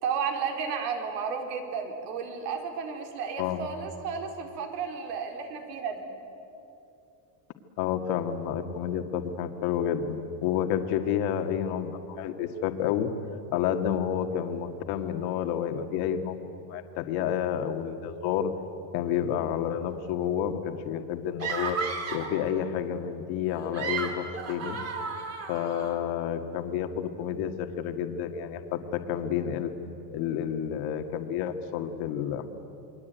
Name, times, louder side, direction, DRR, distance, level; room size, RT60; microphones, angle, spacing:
voice 1, 0.0-6.1, right 6 dB, 75° right, 4 dB, 4.4 m, -33 dB
voice 2, 3.4-3.7 7.8-13.1 13.5-16.4 16.7-18.5 18.9-21.8 22.1-24.8 25.5-29.7 30.1-32.5, left 9 dB, 45° left, 6 dB, 2.0 m, -30 dB
sound 1, 21.4-22.4 23.5-25.9, right 5 dB, 30° right, 2.9 m, -33 dB
28.5 x 22.5 x 9.3 m, 2.8 s
supercardioid pair, 165°, 49 cm